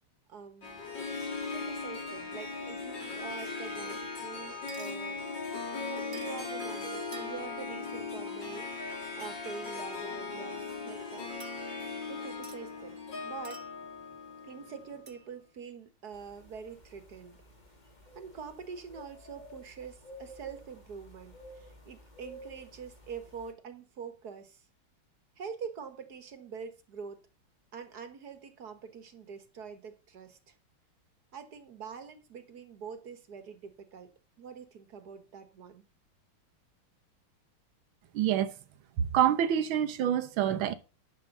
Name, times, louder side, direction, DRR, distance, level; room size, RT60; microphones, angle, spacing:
voice 1, 0.3-0.8 1.5-5.2 5.9-11.3 12.1-13.7 14.4-17.4 18.2-24.6 25.4-27.2 27.7-30.6 31.3-34.1 34.4-35.8, right 6 dB, 50° right, 1.8 m, -45 dB
Harp, 0.6-15.1, left 4 dB, 55° left, 3.8 m, -38 dB
sound 1, 4.7-5.0 6.1-6.5 7.1-7.6 11.4-12.0 12.4-12.6 13.4-13.9 15.1-15.3, right 4 dB, 35° right, 1.5 m, -50 dB
sound 2, 16.1-23.5, equal, 20° left, 1.8 m, -53 dB
voice 2, 38.1-38.5 39.0-40.7, right 10 dB, 70° right, 1.7 m, -27 dB
11.0 x 7.3 x 5.4 m
omnidirectional pair, 2.4 m